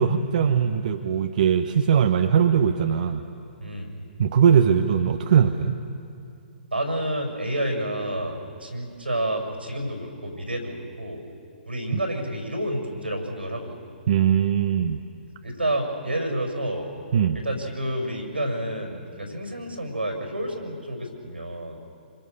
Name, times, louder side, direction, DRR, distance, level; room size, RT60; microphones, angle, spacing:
voice 1, 0.0-3.2 4.2-5.8 11.9-12.0 14.1-15.0 17.1-17.4, right 7 dB, 50° right, 6 dB, 1.1 m, -20 dB
voice 2, 6.7-11.2 11.6-13.7 15.4-16.9 17.3-21.8, right 1 dB, 85° right, 2 dB, 6.3 m, -29 dB
27.0 x 26.5 x 6.8 m, 2.6 s
figure-of-eight pair, 125°, 5 cm